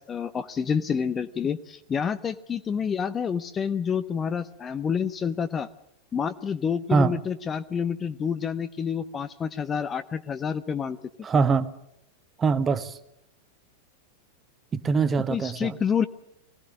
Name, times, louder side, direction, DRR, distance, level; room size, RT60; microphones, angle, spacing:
voice 1, 0.0-5.7 6.1-11.0 15.3-16.0, left 7 dB, 20° left, 11 dB, 0.8 m, -28 dB
voice 2, 11.2-11.7 12.4-13.0 14.7-15.8, right 5 dB, 20° right, 11 dB, 1.3 m, -23 dB
23.0 x 17.0 x 8.8 m, 0.80 s
figure-of-eight pair, 90°, 0 cm